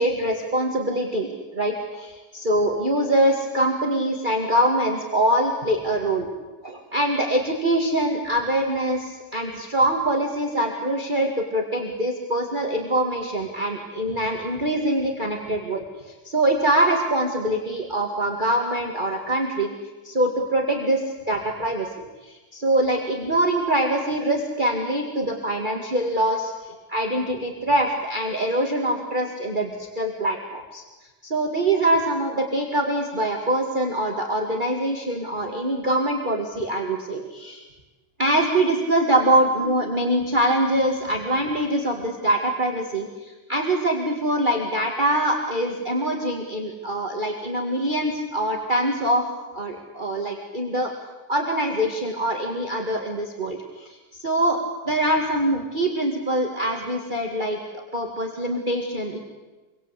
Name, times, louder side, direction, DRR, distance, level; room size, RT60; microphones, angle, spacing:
voice 1, 0.0-6.3 6.6-19.7 20.0-21.9 22.2-30.8 31.2-37.6 38.2-49.2 49.5-50.9 51.3-59.2, right 1 dB, 25° right, 1 dB, 2.2 m, -24 dB
27.0 x 23.5 x 8.3 m, 1.2 s
omnidirectional pair, 2.2 m